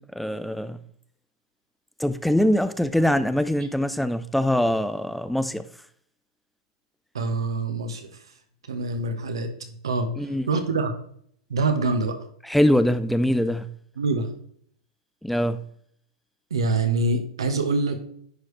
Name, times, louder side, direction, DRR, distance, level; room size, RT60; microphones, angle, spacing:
voice 1, 0.2-0.8 2.0-5.6 10.2-10.5 12.4-13.7 15.2-15.6, left 1 dB, ahead, 0.4 m, -23 dB
voice 2, 7.1-8.1 8.7-10.2 10.5-10.9 11.5-12.2 14.0-14.3 16.5-18.0, right 3 dB, 85° right, 1.1 m, -25 dB
9.9 x 4.7 x 3.2 m
hypercardioid pair, 105°, 3 cm